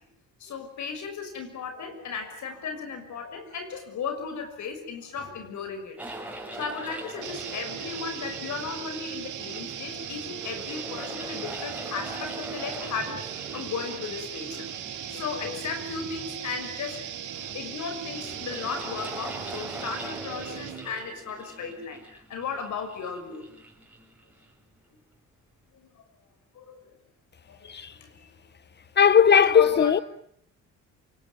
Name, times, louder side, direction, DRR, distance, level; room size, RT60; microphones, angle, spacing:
voice 1, 0.4-6.0 6.5-14.7 14.9-17.0 17.3-23.4 24.9-25.0 25.7-26.0 26.5-26.9 27.5-28.3 29.3-30.0, left 5 dB, 70° left, 6.0 m, -35 dB
sound 1, 6.0-24.6, right 1 dB, 5° right, 6.2 m, -43 dB
sound 2, 7.2-20.9, right 9 dB, 85° right, 4.7 m, -38 dB
voice 2, 29.0-30.0, left 7 dB, 35° left, 1.1 m, -17 dB
28.0 x 19.0 x 9.4 m
cardioid pair, 90°, 30 cm